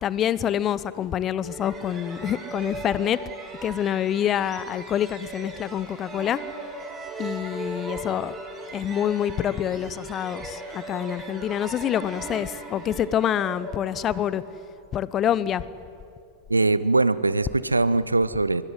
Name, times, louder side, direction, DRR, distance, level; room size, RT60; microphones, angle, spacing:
voice 1, 0.0-3.2 3.6-6.4 7.2-8.4 8.7-14.4 14.9-15.6, left 10 dB, 30° left, 18 dB, 0.9 m, -26 dB
sound 1, 1.4-14.9, right 2 dB, 20° right, 4.8 m, -38 dB
voice 2, 16.5-18.6, right 2 dB, 80° right, 17 dB, 0.7 m, -21 dB
23.5 x 22.0 x 9.9 m, 2.5 s
figure-of-eight pair, 90°, 0 cm